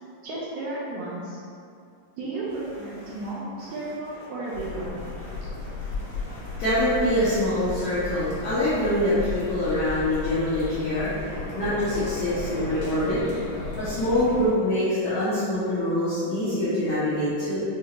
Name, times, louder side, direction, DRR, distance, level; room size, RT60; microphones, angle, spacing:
voice 1, 0.2-1.4 2.2-5.0, right 2 dB, 80° right, -7 dB, 1.7 m, -33 dB
sound 1, 4.5-14.5, left 3 dB, 65° left, 1.5 m, -34 dB
voice 2, 5.8-13.2 13.8-17.6, left 1 dB, 80° left, -12 dB, 1.2 m, -25 dB
6.0 x 2.4 x 2.9 m, 2.4 s
omnidirectional pair, 4.0 m